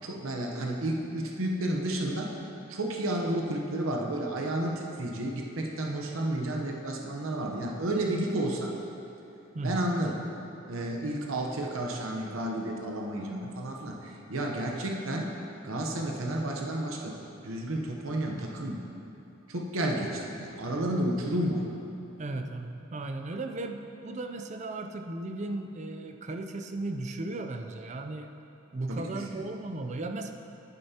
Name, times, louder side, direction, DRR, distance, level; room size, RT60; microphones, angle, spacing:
voice 1, 0.0-2.4 2.7-8.7 9.6-10.2 10.7-15.3 15.6-17.2 17.4-18.8 19.5-21.6 28.9-29.2, right 1 dB, 80° right, 0 dB, 0.8 m, -31 dB
voice 2, 9.5-9.9 22.2-28.3 28.7-30.3, right 2 dB, 35° right, 6 dB, 0.4 m, -36 dB
10.5 x 8.9 x 2.8 m, 2.9 s
head